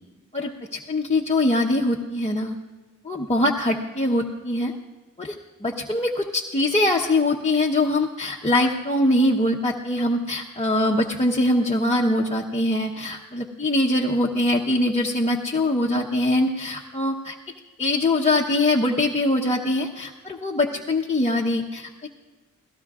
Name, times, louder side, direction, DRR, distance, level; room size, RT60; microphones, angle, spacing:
voice 1, 0.3-2.6 3.0-4.7 5.2-5.4 5.6-17.3 17.8-22.1, left 1 dB, 20° left, -2 dB, 0.9 m, -23 dB
28.5 x 17.5 x 2.4 m, 1.3 s
wide cardioid pair, 115°, 33 cm